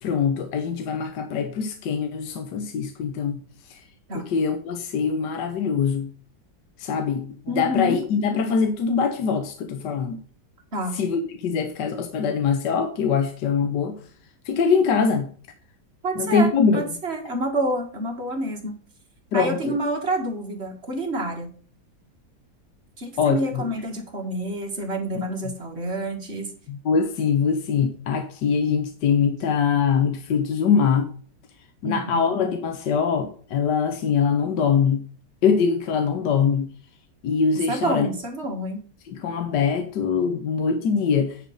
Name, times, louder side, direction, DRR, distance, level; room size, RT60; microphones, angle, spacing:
voice 1, 0.0-3.4 3.7-3.8 4.1-6.1 6.8-10.2 10.9-14.0 14.4-15.3 16.1-16.8 19.3-19.8 23.2-23.7 25.2-25.3 26.7-31.1 31.8-35.0 35.4-36.7 37.2-38.1 39.1-41.4, left 6 dB, 75° left, 1.6 m, -23 dB
voice 2, 7.5-8.0 10.7-11.0 16.0-16.5 16.7-18.8 19.3-21.5 23.0-26.5 31.8-32.4 37.7-38.8, right 1 dB, 35° right, 2.1 m, -28 dB
10.0 x 5.0 x 5.4 m
omnidirectional pair, 1.9 m